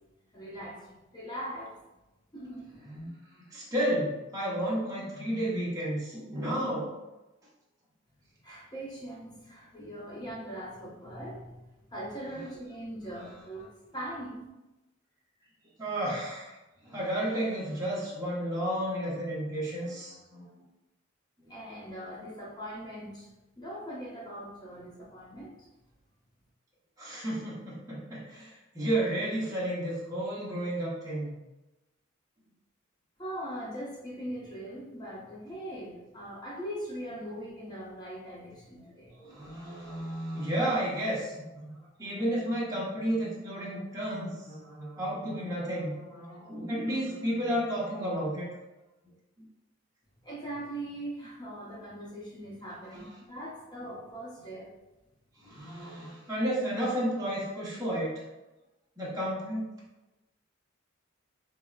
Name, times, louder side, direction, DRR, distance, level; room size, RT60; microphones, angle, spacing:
voice 1, 0.3-1.8 2.3-2.7 8.4-13.7 13.9-14.5 21.5-23.3 23.6-25.7 33.2-39.2 50.2-54.7, right 1 dB, 20° left, -4 dB, 0.7 m, -41 dB
voice 2, 3.5-6.9 13.2-13.3 15.8-16.6 16.8-20.4 21.4-21.5 27.0-31.3 39.2-41.4 41.6-48.5 52.9-53.0 55.4-58.1 59.0-59.7, right 1 dB, 20° right, -7 dB, 0.9 m, -32 dB
4.5 x 2.0 x 2.3 m, 1.0 s
head